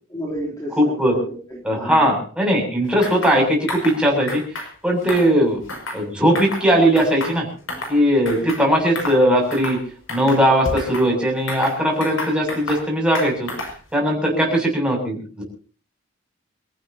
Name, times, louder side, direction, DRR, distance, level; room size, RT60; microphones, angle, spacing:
voice 1, 0.1-2.0 5.4-5.6 8.4-8.6 14.3-14.5, equal, 15° left, -4 dB, 3.4 m, -31 dB
voice 2, 0.7-1.2 1.6-4.4 4.8-5.6 5.9-7.5 7.9-9.8 10.1-13.5 13.9-15.4, equal, 5° right, -1 dB, 7.3 m, -19 dB
sound 1, 3.0-3.4 3.7-4.0 4.3-4.7 5.0-6.0 6.3-6.7 7.0-8.0 8.2-8.6 8.9-9.2 9.5-9.8 10.1-11.1 11.5-12.8 13.1-13.8, left 1 dB, 80° left, 6.1 m, -30 dB
28.5 x 15.0 x 2.9 m, 0.40 s
head